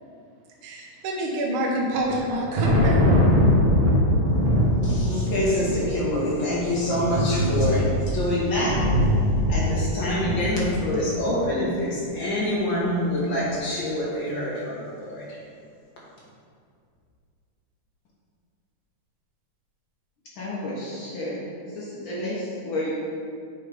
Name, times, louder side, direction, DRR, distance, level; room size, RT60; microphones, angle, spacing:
voice 1, 0.6-3.1, right 1 dB, 80° right, -1 dB, 1.1 m, -27 dB
Thunder, 1.9-11.4, equal, 55° right, 1.9 m, -22 dB
voice 2, 4.8-8.7 9.5-15.4, left 1 dB, 45° left, -6 dB, 1.9 m, -26 dB
voice 3, 20.4-21.4 21.7-22.9, left 1 dB, 90° left, -7 dB, 1.1 m, -31 dB
7.4 x 4.9 x 5.1 m, 2.2 s
omnidirectional pair, 3.9 m